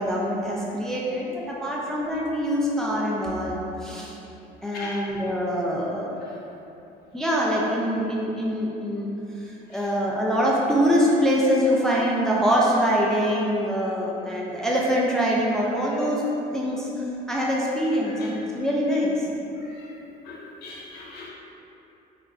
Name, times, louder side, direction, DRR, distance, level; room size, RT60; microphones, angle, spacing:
voice 1, 0.0-4.2 4.6-6.1 7.1-9.1 9.4-16.2 16.5-19.3, equal, 5° left, -4 dB, 0.3 m, -24 dB
voice 2, 4.7-5.1 6.2-6.4 9.7-9.9 15.8-16.0 18.0-18.4 19.6-19.9 20.2-21.3, left 3 dB, 70° left, -3 dB, 0.6 m, -42 dB
4.0 x 2.2 x 2.4 m, 3.0 s
cardioid pair, 110°, 17 cm